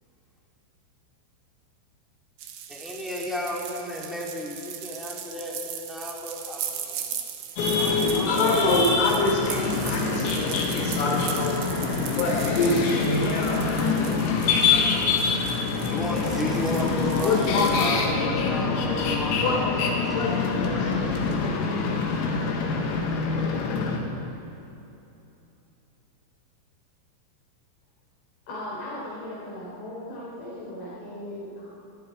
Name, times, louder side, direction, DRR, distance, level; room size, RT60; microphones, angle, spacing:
sound 1, 2.4-17.9, right 9 dB, 65° right, 2.7 m, -38 dB
voice 1, 2.7-7.2 7.7-8.7 9.6-9.7 15.9-19.7 20.0-21.1, left 1 dB, ahead, -4 dB, 1.6 m, -34 dB
sound 2, 7.6-24.0, left 4 dB, 85° left, 4.8 m, -25 dB
voice 2, 7.9-15.9 17.2-17.8 19.4-21.6, left 2 dB, 65° left, -2 dB, 5.8 m, -28 dB
voice 3, 28.5-31.8, left 1 dB, 40° left, -7 dB, 5.6 m, -37 dB
26.0 x 21.5 x 4.8 m, 2.8 s
omnidirectional pair, 6.0 m